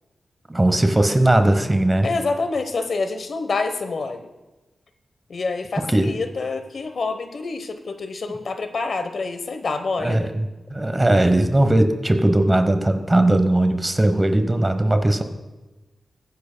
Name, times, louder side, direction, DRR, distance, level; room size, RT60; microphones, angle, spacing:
voice 1, 0.5-2.1 5.9-6.1 10.0-15.2, right 1 dB, 20° right, 8 dB, 0.9 m, -19 dB
voice 2, 2.0-4.3 5.3-10.3, left 3 dB, 60° left, 8 dB, 0.9 m, -27 dB
22.0 x 10.0 x 2.2 m, 1.1 s
wide cardioid pair, 130°, 0 cm